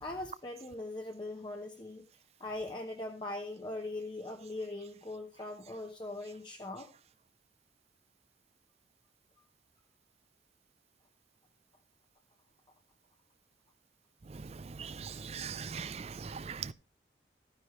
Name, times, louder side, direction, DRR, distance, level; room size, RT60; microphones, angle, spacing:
voice 1, 0.0-2.1 2.4-6.9, left 2 dB, 25° left, 1.0 m, -41 dB
voice 2, 15.0-16.7, right 6 dB, 35° right, 0.4 m, -40 dB
13.5 x 9.9 x 3.1 m
head